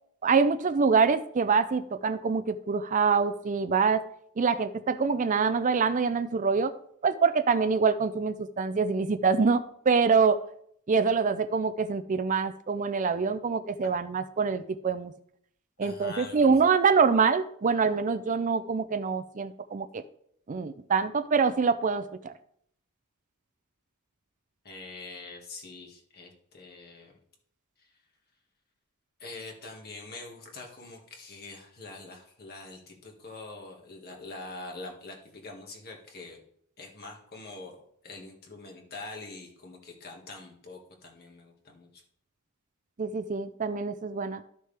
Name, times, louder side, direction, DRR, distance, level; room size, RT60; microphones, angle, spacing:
voice 1, 0.2-4.1 4.4-6.7 7.0-10.4 10.9-15.1 15.8-20.0 20.5-22.3 43.0-44.4, right 5 dB, 35° right, 11 dB, 0.4 m, -25 dB
voice 2, 15.8-16.5 24.6-27.1 27.8-27.9 29.2-36.4 36.8-42.0, left 3 dB, 45° left, 1 dB, 1.8 m, -44 dB
13.0 x 6.4 x 3.4 m, 0.68 s
head